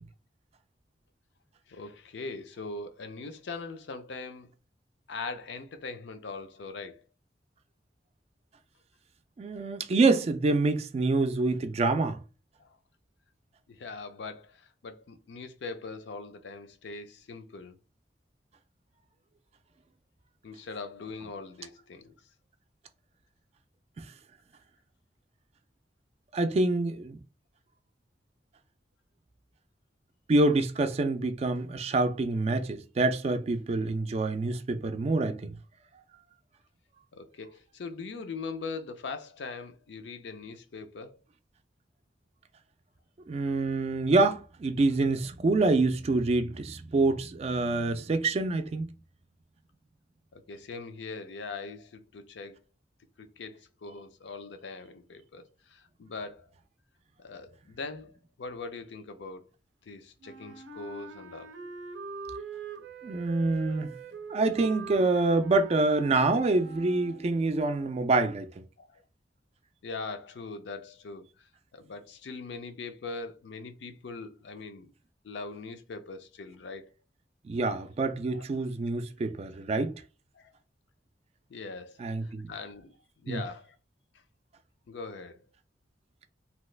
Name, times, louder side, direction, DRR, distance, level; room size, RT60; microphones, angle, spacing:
voice 1, 1.7-4.5 5.1-7.0 12.6-12.8 13.7-17.8 20.4-22.1 37.1-41.2 50.3-52.6 53.2-56.5 57.2-59.5 59.8-61.5 63.5-63.6 67.1-67.2 68.8-69.0 69.8-74.9 75.2-76.9 78.3-78.4 80.3-80.5 81.5-83.8 84.9-85.4, left 4 dB, 75° left, 0.4 m, -41 dB
voice 2, 9.4-12.2 24.0-24.1 26.3-27.2 30.3-35.5 43.3-48.9 63.0-63.9 64.3-68.5 77.4-79.9 82.0-82.5 83.3-83.4, right 3 dB, 35° right, 0.3 m, -26 dB
Wind instrument woodwind instrument, 60.2-67.5, right 3 dB, 90° right, 0.5 m, -43 dB
2.8 x 2.3 x 3.2 m
head